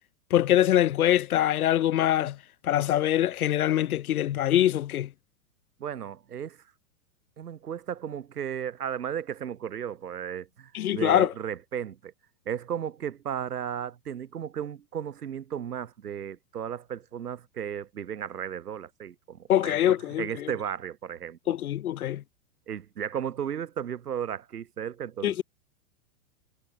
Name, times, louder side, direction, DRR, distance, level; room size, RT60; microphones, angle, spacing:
voice 1, 0.3-2.4 2.6-5.1 10.7-11.3 19.5-20.3 21.5-22.2 25.2-25.4, left 12 dB, 70° left, 5.0 m, -23 dB
voice 2, 5.8-6.6 7.4-12.1 12.5-21.6 22.7-25.4, right 9 dB, 85° right, 5.5 m, -35 dB
hypercardioid pair, 130°, 45 cm